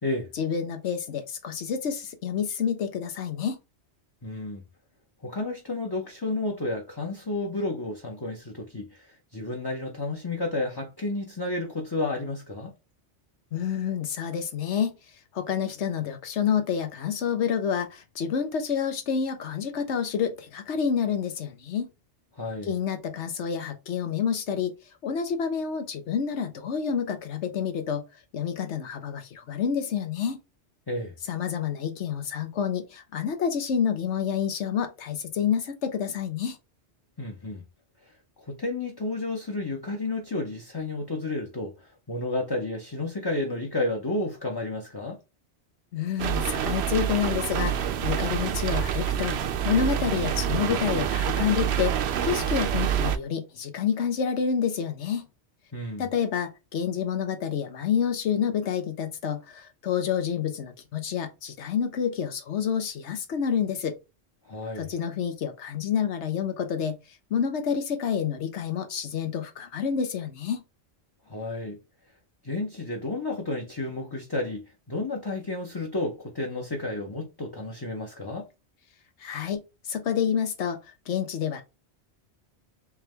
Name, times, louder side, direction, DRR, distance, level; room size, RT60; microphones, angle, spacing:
voice 1, 0.3-3.6 13.5-14.9 15.3-21.9 22.6-24.7 25.0-28.0 28.3-30.4 31.3-36.6 45.9-55.3 56.0-64.0 64.8-67.0 67.3-70.6 79.2-80.8 81.1-81.6, left 7 dB, 80° left, 1.1 m, -28 dB
voice 2, 4.2-4.6 5.2-12.7 22.4-22.7 30.9-31.1 37.2-37.6 38.4-45.2 55.7-56.1 64.4-64.9 71.3-71.8 72.4-78.5, left 2 dB, 25° left, 0.7 m, -31 dB
sound 1, 46.2-53.2, right 9 dB, 70° right, 0.8 m, -27 dB
3.6 x 3.1 x 3.3 m
omnidirectional pair, 1.2 m